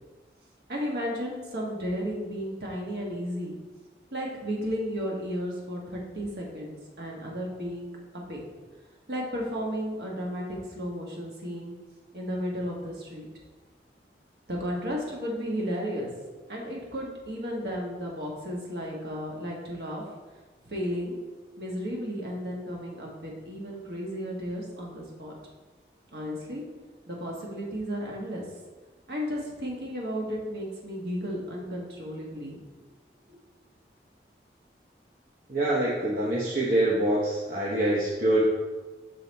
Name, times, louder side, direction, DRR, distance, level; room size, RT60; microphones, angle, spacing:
voice 1, 0.7-3.6 4.1-7.9 8.3-8.4 9.1-11.7 12.1-13.3 14.5-16.1 16.5-20.0 20.7-21.2 21.6-25.3 26.1-26.6 27.1-28.5 29.1-32.6 33.3-33.4, equal, 65° right, -2 dB, 1.3 m, -33 dB
voice 2, 35.5-38.4, right 1 dB, 50° right, -5 dB, 0.8 m, -25 dB
6.4 x 4.0 x 4.0 m, 1.3 s
head